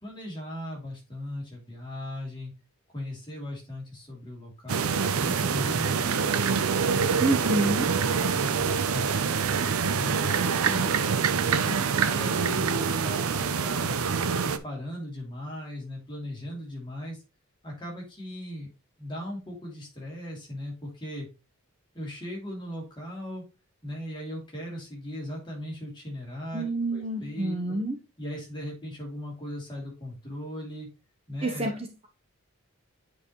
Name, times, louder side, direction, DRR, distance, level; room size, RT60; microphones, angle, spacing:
voice 1, 0.0-2.5 2.9-4.9 5.2-6.4 6.8-7.5 7.8-9.3 9.9-11.0 11.6-14.0 14.4-17.2 17.6-18.7 19.0-21.3 21.9-23.4 23.8-26.6 26.9-27.8 28.2-30.9 31.3-31.8, left 1 dB, 20° left, -2 dB, 2.9 m, -38 dB
sound 1, 4.7-14.6, right 6 dB, 80° right, 0.6 m, -25 dB
voice 2, 7.2-7.9 26.5-27.9 31.4-32.1, right 2 dB, 25° right, 3 dB, 0.8 m, -28 dB
8.6 x 4.9 x 3.1 m, 0.28 s
head